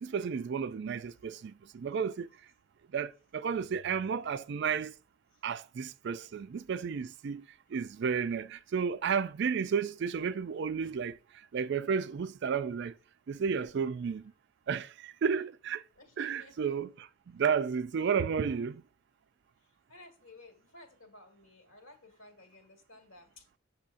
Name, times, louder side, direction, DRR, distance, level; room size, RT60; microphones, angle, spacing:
voice 1, 0.0-2.3 2.9-4.9 5.4-13.0 13.3-14.3 14.7-15.8 16.2-18.8, right 6 dB, 55° right, 0.3 m, -32 dB
voice 2, 16.0-16.8 18.4-18.6 19.9-23.4, left 2 dB, 70° left, 1.8 m, -55 dB
6.9 x 6.2 x 2.5 m
head